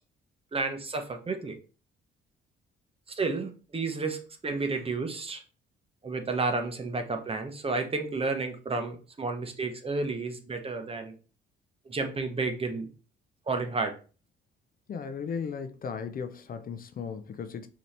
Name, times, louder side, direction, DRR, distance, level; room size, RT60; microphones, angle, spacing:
voice 1, 0.5-1.6 3.1-5.4 6.0-11.1 11.9-12.9 13.5-13.9, right 3 dB, 30° right, 0.9 m, -31 dB
voice 2, 14.9-17.7, left 6 dB, 45° left, 0.5 m, -36 dB
5.3 x 2.9 x 3.3 m
cardioid pair, 90°, 20 cm